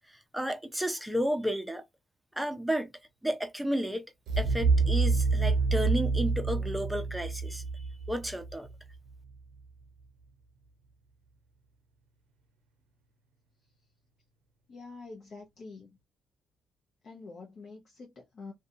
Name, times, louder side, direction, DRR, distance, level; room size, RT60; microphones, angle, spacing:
voice 1, 0.3-1.8 2.4-2.9 3.2-4.0 4.4-7.6 8.1-8.7, equal, 5° right, 0.6 m, -32 dB
sound 1, 4.3-9.1, right 4 dB, 80° right, 0.5 m, -27 dB
voice 2, 14.7-15.9 17.0-18.5, left 3 dB, 50° left, 0.7 m, -46 dB
2.6 x 2.3 x 2.5 m
cardioid pair, 90°, 0 cm